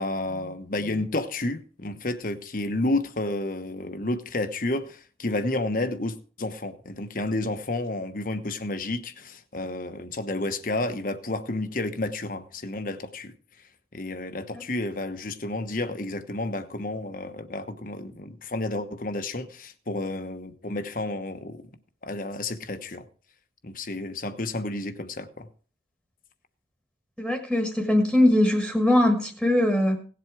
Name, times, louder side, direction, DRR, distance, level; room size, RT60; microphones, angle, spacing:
voice 1, 0.0-13.3 13.9-21.6 22.0-23.1 23.6-25.5, left 2 dB, 45° left, 1.1 m, -31 dB
voice 2, 27.2-30.0, left 1 dB, ahead, 1.5 m, -21 dB
17.5 x 7.8 x 4.8 m
head